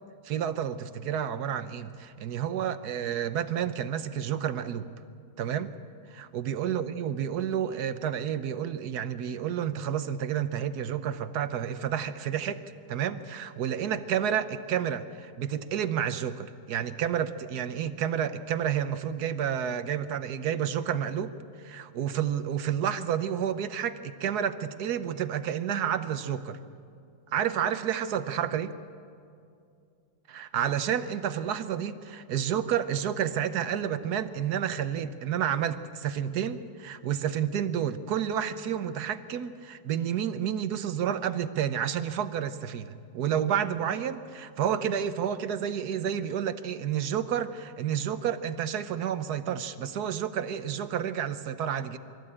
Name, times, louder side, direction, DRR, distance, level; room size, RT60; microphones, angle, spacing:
voice 1, 0.2-4.9 5.4-5.7 6.1-12.6 12.9-26.6 27.3-28.7 30.3-52.0, right 9 dB, 70° right, 11 dB, 1.2 m, -30 dB
24.0 x 14.0 x 8.7 m, 2.4 s
omnidirectional pair, 1.8 m